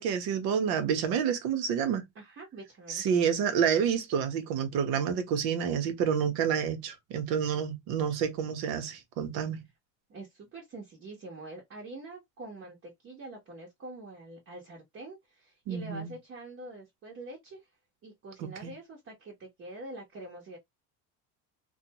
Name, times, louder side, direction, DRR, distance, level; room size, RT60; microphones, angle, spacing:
voice 1, 0.0-2.0 2.9-9.6 15.7-16.1 18.4-18.7, right 7 dB, 65° right, 0.9 m, -29 dB
voice 2, 2.1-3.0 10.1-17.6 18.0-20.6, right 2 dB, 35° right, 1.0 m, -45 dB
2.5 x 2.3 x 2.8 m
cardioid pair, 130°, 40 cm